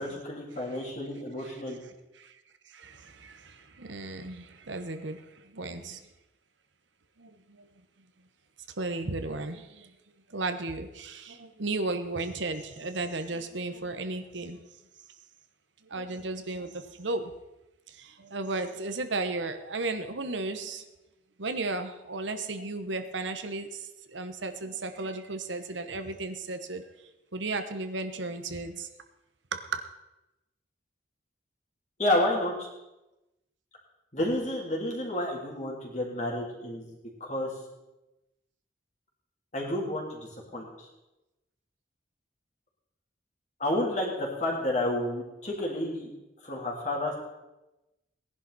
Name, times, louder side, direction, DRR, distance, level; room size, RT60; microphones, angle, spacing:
voice 1, 0.0-1.8 32.0-32.7 34.1-37.5 39.5-40.7 43.6-46.1 46.4-47.2, left 1 dB, 40° left, -2 dB, 3.3 m, -30 dB
voice 2, 2.7-6.0 7.2-7.7 8.8-9.9 10.3-14.6 15.9-17.3 17.9-20.8 21.4-26.8 27.3-28.9 29.5-29.8, right 3 dB, 80° right, 7 dB, 1.1 m, -34 dB
18.5 x 11.0 x 4.2 m, 0.98 s
head